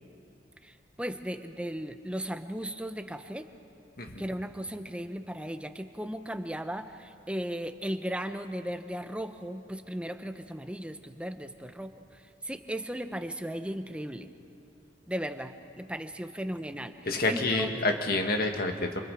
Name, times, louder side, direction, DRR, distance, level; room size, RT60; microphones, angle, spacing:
voice 1, 0.6-3.5 4.2-11.9 12.4-14.3 15.1-17.7, equal, 5° right, 8 dB, 0.9 m, -36 dB
voice 2, 17.1-19.0, left 2 dB, 55° left, 4 dB, 2.0 m, -28 dB
28.5 x 27.5 x 4.9 m, 2.5 s
head